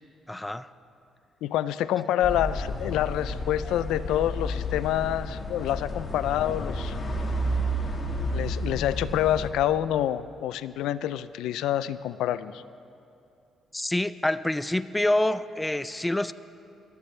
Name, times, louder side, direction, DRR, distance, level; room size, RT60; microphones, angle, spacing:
voice 1, 0.3-0.7 13.7-16.3, left 1 dB, 10° left, 14 dB, 0.4 m, -27 dB
voice 2, 1.4-6.9 8.3-12.6, left 11 dB, 90° left, 15 dB, 0.4 m, -27 dB
sound 1, 2.2-9.5, equal, 35° left, 1.7 m, -31 dB
26.5 x 13.5 x 3.3 m, 2.7 s
cardioid pair, 90°, 0 cm